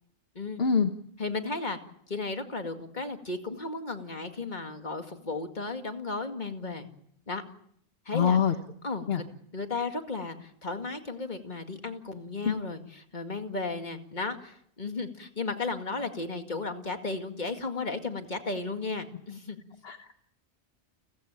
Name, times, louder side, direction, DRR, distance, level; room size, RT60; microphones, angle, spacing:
voice 1, 0.6-0.9 8.1-8.5 9.1-9.2 12.4-12.5 19.8-20.1, left 6 dB, 60° left, 7 dB, 1.4 m, -24 dB
voice 2, 1.2-1.8 2.1-6.9 7.3-7.4 8.1-8.4 8.8-9.2 9.5-19.8, left 3 dB, 40° left, 6 dB, 2.3 m, -34 dB
30.0 x 15.5 x 8.9 m, 0.70 s
omnidirectional pair, 1.2 m